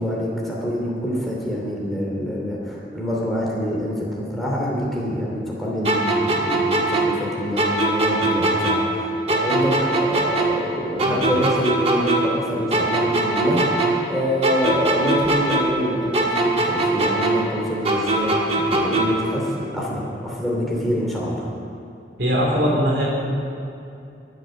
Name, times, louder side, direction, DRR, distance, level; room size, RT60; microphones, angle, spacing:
voice 1, 0.0-21.5, equal, ahead, -4 dB, 2.8 m, -26 dB
sound 1, 5.8-9.0 9.3-12.4 12.7-15.9 16.1-19.3, right 2 dB, 35° right, 1.6 m, -21 dB
voice 2, 22.2-23.1, equal, 90° right, -3 dB, 4.0 m, -21 dB
22.0 x 8.1 x 6.5 m, 2.6 s
head